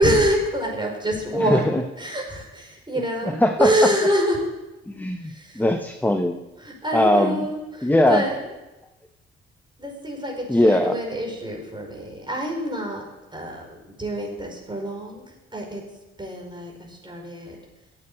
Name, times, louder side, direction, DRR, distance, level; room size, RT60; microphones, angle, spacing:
voice 1, 0.0-4.4 5.2-5.6 6.6-8.4 9.8-13.0 13.3-15.8 16.2-17.6, right 1 dB, 15° right, 0 dB, 5.1 m, -26 dB
voice 2, 1.5-1.8 3.4-3.7 4.9-6.4 6.9-7.5 7.8-8.2 10.5-11.0, left 1 dB, 5° left, 6 dB, 1.0 m, -20 dB
9.2 x 8.5 x 8.8 m, 1.0 s
hypercardioid pair, 40°, 32 cm